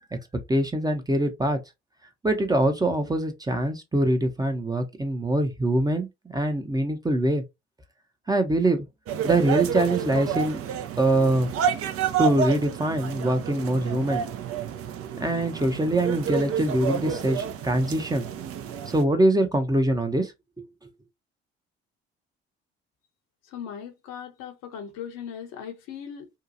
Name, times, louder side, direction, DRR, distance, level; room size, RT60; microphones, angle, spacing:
voice 1, 0.5-1.6 2.2-7.4 8.3-8.9 9.2-10.6 11.0-11.5 12.2-14.2 15.2-18.3 18.9-20.3 20.6-20.7, right 1 dB, 15° right, 0.7 m, -23 dB
sound 1, 9.1-19.0, right 8 dB, 50° right, 0.6 m, -30 dB
voice 2, 23.5-26.3, left 8 dB, 65° left, 0.8 m, -38 dB
2.8 x 2.3 x 2.6 m
hypercardioid pair, 50°, 29 cm